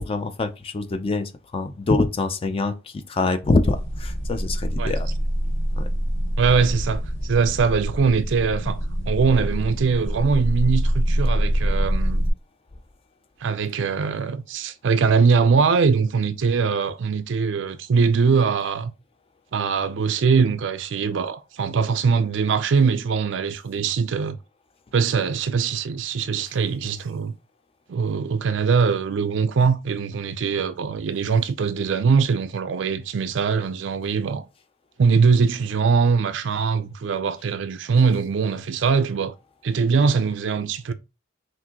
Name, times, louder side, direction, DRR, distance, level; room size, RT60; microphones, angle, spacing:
voice 1, 0.0-5.1 5.8-5.9, left 3 dB, 30° left, 0.3 m, -25 dB
sound 1, 3.6-12.3, equal, 70° left, 2.2 m, -25 dB
voice 2, 6.4-8.8 9.1-12.3 13.4-18.9 19.5-24.4 24.9-27.3 27.9-34.4 35.0-39.3 39.6-40.9, right 5 dB, 65° right, 0.4 m, -22 dB
6.0 x 2.5 x 2.8 m
head